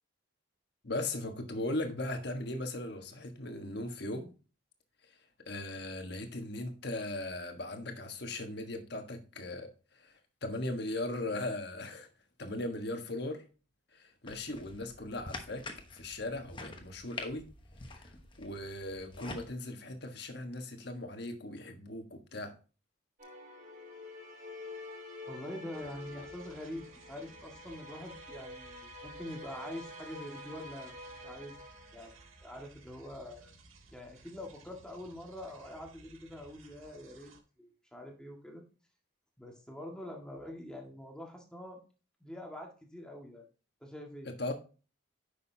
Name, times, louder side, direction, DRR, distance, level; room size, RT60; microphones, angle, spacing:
voice 1, 0.8-4.3 5.1-5.2 5.4-12.1 12.4-13.4 13.9-17.5 17.9-18.1 18.4-22.5 44.2-44.5, left 2 dB, 55° left, 1.4 m, -38 dB
sound 1, 14.3-19.5, left 2 dB, 25° left, 1.1 m, -46 dB
sound 2, 23.2-33.0, left 1 dB, 40° right, 3.2 m, -48 dB
voice 2, 25.3-30.9 31.2-31.6 31.9-32.1 32.4-33.5 33.9-37.3 37.6-38.6 39.4-41.8 42.2-43.4 43.8-44.3, left 1 dB, 5° left, 1.8 m, -45 dB
sound 3, 25.7-37.4, right 3 dB, 90° right, 1.7 m, -58 dB
9.8 x 6.6 x 2.8 m
head